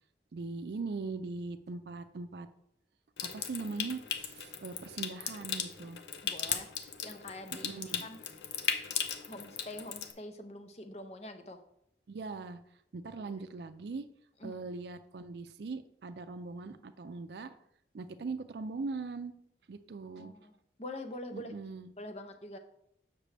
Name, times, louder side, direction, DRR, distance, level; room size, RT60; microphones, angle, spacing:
voice 1, 0.3-2.5 3.3-6.0 7.6-8.1 12.1-12.6 12.9-14.1 14.4-17.6 17.9-19.3 19.7-20.3 21.3-21.9, right 3 dB, 70° right, 10 dB, 0.4 m, -40 dB
Water tap faucet / Sink (filling or washing) / Trickle dribble, 3.2-10.1, left 8 dB, 75° left, 0.7 m, -37 dB
voice 2, 6.2-7.7 8.0-8.2 8.6-11.6 13.1-13.4 14.4-14.6 20.2-20.5 20.8-21.5 22.0-22.6, left 1 dB, 35° left, 7 dB, 0.6 m, -45 dB
7.5 x 5.9 x 3.3 m, 0.73 s
head